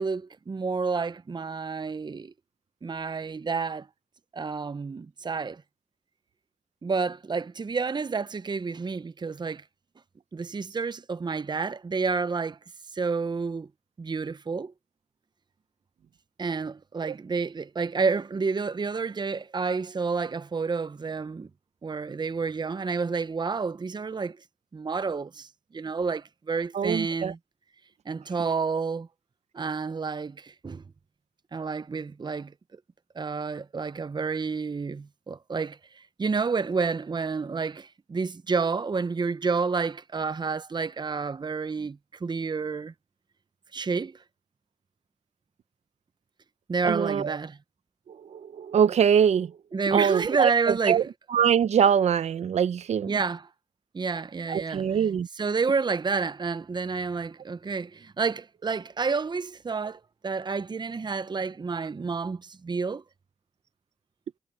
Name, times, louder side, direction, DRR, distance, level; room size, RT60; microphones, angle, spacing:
voice 1, 0.0-2.3 2.8-3.9 4.3-5.6 6.8-9.6 10.3-12.6 12.9-13.7 14.0-14.7 16.4-21.5 21.8-24.4 24.7-27.4 28.1-29.1 29.5-30.8 31.5-32.5 33.1-42.9 43.7-44.2 46.7-47.6 49.7-51.1 53.0-53.5 53.9-55.0 55.4-63.0, right 4 dB, 40° right, 0.8 m, -29 dB
voice 2, 26.7-27.3 46.8-47.4 48.3-49.5 49.9-51.0 51.3-53.1 54.5-55.3, right 8 dB, 75° right, 0.8 m, -23 dB
supercardioid pair, 40°, 12 cm